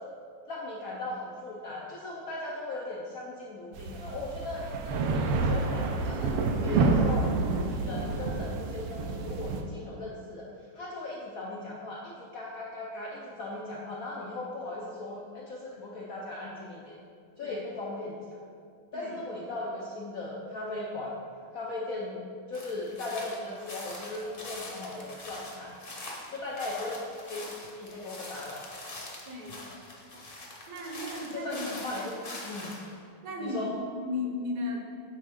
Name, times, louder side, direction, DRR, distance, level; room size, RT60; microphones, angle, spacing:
voice 1, 0.5-6.3 6.6-7.3 7.7-10.5 10.7-17.0 17.4-18.4 18.9-21.2 21.5-25.8 26.3-27.0 27.3-27.5 27.7-28.7 31.3-32.2 32.5-32.8 33.4-33.7, left 2 dB, 80° left, -3 dB, 0.7 m, -38 dB
sound 1, 3.7-9.6, right 3 dB, 85° right, 1.5 m, -28 dB
voice 2, 18.9-19.3 29.3-29.6 30.7-32.0 33.2-34.8, left 2 dB, 55° right, 0 dB, 1.1 m, -35 dB
sound 2, 22.5-32.9, left 2 dB, 40° left, 0.8 m, -43 dB
8.8 x 4.3 x 3.5 m, 2.3 s
omnidirectional pair, 2.3 m